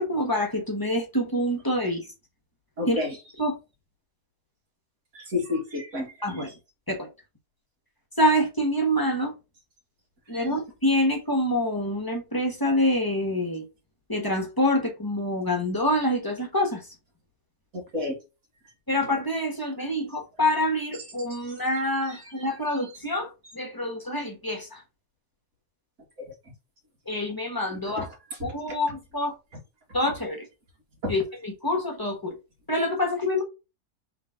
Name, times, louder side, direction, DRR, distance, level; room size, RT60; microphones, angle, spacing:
voice 1, 0.0-2.1 2.9-3.0 3.4-3.5 6.2-6.5 6.9-7.1 8.2-9.3 10.3-13.6 14.1-16.9 18.9-23.3 23.5-24.8 27.1-28.1 28.4-29.3 29.9-30.5 31.1-32.3 32.7-33.4, left 1 dB, 15° left, 1.2 m, -26 dB
voice 2, 2.8-3.2 5.1-6.1 6.4-6.5 10.3-10.6 17.7-18.2 21.3-21.4 22.1-22.5 28.0-28.1 31.0-31.1, left 3 dB, 65° right, 2.3 m, -31 dB
3.8 x 3.6 x 3.7 m
omnidirectional pair, 1.6 m